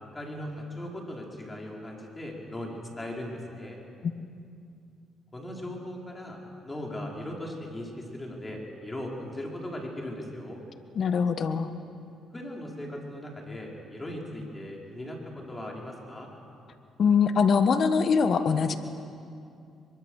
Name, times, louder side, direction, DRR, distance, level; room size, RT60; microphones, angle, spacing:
voice 1, 0.1-3.8 5.3-6.4 6.6-10.6 12.3-16.3, left 1 dB, 20° left, -1 dB, 5.2 m, -38 dB
voice 2, 10.9-11.7 17.0-18.8, left 6 dB, 55° left, 9 dB, 1.4 m, -23 dB
23.5 x 22.5 x 6.6 m, 2.5 s
supercardioid pair, 75°, 0 cm